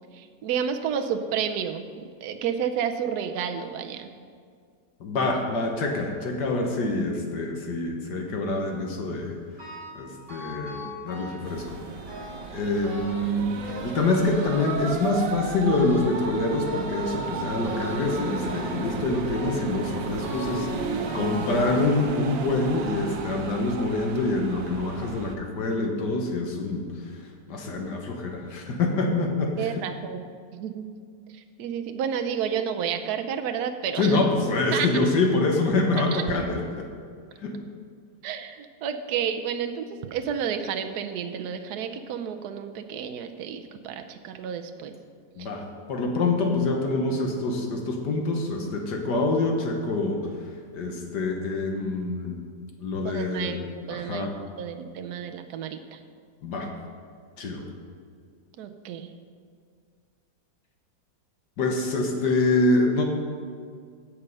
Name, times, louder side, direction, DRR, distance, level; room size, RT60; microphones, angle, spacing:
voice 1, 0.1-1.8 2.2-4.1 29.6-30.3 30.5-30.8 31.3-34.2 34.7-34.9 36.1-36.4 38.2-44.9 45.4-45.5 53.0-53.6 53.9-54.3 54.6-56.0 58.6-59.1, right 8 dB, 65° right, 7 dB, 1.2 m, -31 dB
voice 2, 5.0-9.4 9.9-11.8 12.5-26.9 27.5-29.5 34.0-36.9 37.4-37.6 45.4-50.2 50.7-52.4 52.8-53.6 53.9-54.3 56.4-56.7 57.4-57.6 61.6-63.0, left 2 dB, 65° left, 2 dB, 1.8 m, -26 dB
sound 1, 9.6-10.0 10.3-11.6 12.1-12.5 12.8-13.3 13.6-15.3 15.7-16.2 16.6-17.3 17.6-18.1 18.4-18.8 19.3-19.7 20.2-20.7 21.1-22.1 22.8-22.9 23.7-23.8 24.2-24.3, left 2 dB, 25° right, 2.5 m, -41 dB
sound 2, 11.4-25.3, right 4 dB, 85° right, 1.6 m, -34 dB
16.0 x 5.5 x 5.4 m, 2.1 s
omnidirectional pair, 2.0 m